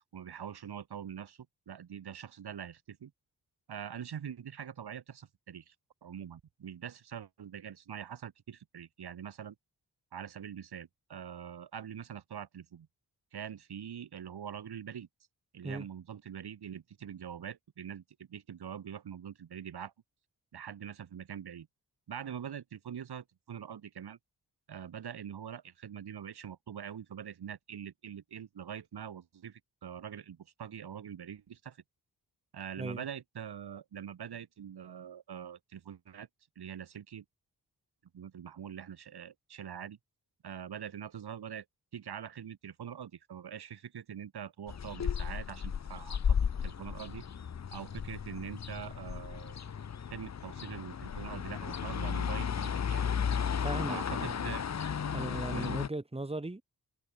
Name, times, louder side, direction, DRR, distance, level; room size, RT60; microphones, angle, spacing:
voice 1, 0.0-3.1 3.7-5.7 6.0-9.6 10.1-12.9 13.3-15.1 15.5-19.9 20.5-21.7 22.1-24.2 24.7-31.8 32.5-36.3 36.6-37.2 38.1-40.0 40.4-41.7 41.9-47.3 47.7-49.6 50.1-53.0 53.9-54.6 55.0-55.8, right 8 dB, 85° right, 4.0 m, -44 dB
sound 1, 44.7-55.9, left 7 dB, 45° left, 0.9 m, -34 dB
voice 2, 53.6-54.6 55.1-56.6, right 2 dB, 15° right, 2.8 m, -38 dB
cardioid pair, 80°, 38 cm